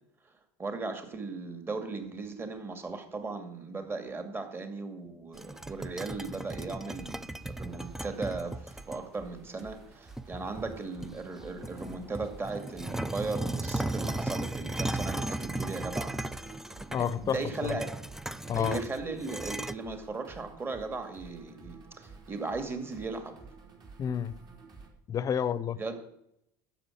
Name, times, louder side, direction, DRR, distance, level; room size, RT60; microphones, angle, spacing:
voice 1, 0.6-16.1 17.0-17.9 18.5-23.4 25.7-26.0, right 3 dB, 25° right, 2.3 m, -37 dB
sound 1, 5.3-9.0 9.6-9.7 10.2-11.3 11.6-19.7, right 1 dB, 5° right, 0.6 m, -36 dB
sound 2, 5.3-24.9, right 4 dB, 40° right, 3.8 m, -52 dB
voice 2, 16.9-17.8 18.5-18.8 24.0-24.3 25.1-25.8, left 8 dB, 35° left, 0.8 m, -30 dB
12.0 x 7.6 x 7.8 m
supercardioid pair, 90°, 10 cm